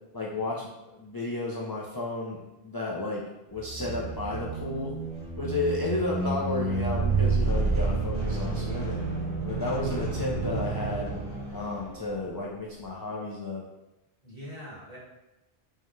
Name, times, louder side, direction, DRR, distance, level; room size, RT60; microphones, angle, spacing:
voice 1, 0.1-3.3 3.5-4.9 5.4-9.1 9.4-11.1 11.5-13.6, left 2 dB, 35° left, -5 dB, 0.3 m, -32 dB
sound 1, 3.5-12.3, right 3 dB, 15° right, 1.2 m, -30 dB
voice 2, 6.2-6.6 14.2-15.0, left 1 dB, 40° right, -8 dB, 1.7 m, -43 dB
5.4 x 2.2 x 3.1 m, 0.96 s
omnidirectional pair, 1.0 m